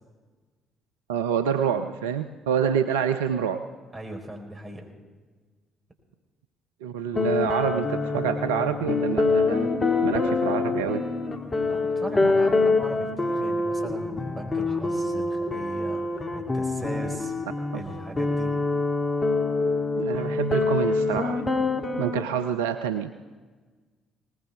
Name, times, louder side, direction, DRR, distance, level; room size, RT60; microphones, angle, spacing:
voice 1, 1.1-3.6 6.8-9.7 10.0-11.0 12.2-12.3 20.0-21.4 22.0-23.2, right 8 dB, 80° right, 8 dB, 0.5 m, -27 dB
voice 2, 3.9-4.9 11.7-17.4 17.7-18.6, right 1 dB, 30° right, 2 dB, 4.2 m, -38 dB
sound 1, 7.1-22.2, left 3 dB, 30° left, 2.0 m, -25 dB
21.0 x 19.0 x 3.6 m, 1.4 s
figure-of-eight pair, 45°, 0 cm